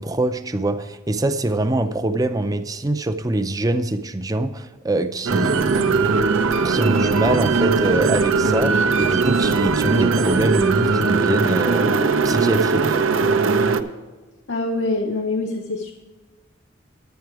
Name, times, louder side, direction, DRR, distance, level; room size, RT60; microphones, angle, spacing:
voice 1, 0.0-6.3 6.6-12.0 12.2-13.0, right 2 dB, 20° right, 8 dB, 0.5 m, -24 dB
sound 1, 5.3-13.8, right 4 dB, 80° right, 0.6 m, -19 dB
voice 2, 14.5-15.9, left 2 dB, 70° left, 2 dB, 0.8 m, -24 dB
10.5 x 9.2 x 4.7 m, 1.3 s
head